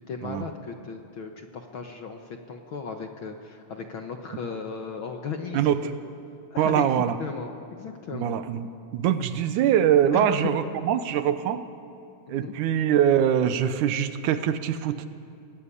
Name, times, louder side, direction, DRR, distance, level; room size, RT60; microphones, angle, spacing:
voice 1, 0.1-5.9 6.5-6.8 7.2-8.3 10.1-10.5 12.3-12.5, left 5 dB, 55° left, 4 dB, 1.5 m, -36 dB
voice 2, 5.5-5.8 6.6-7.2 8.1-11.6 12.3-15.1, right 9 dB, 85° right, 11 dB, 2.4 m, -23 dB
24.0 x 18.0 x 9.8 m, 2.5 s
omnidirectional pair, 3.5 m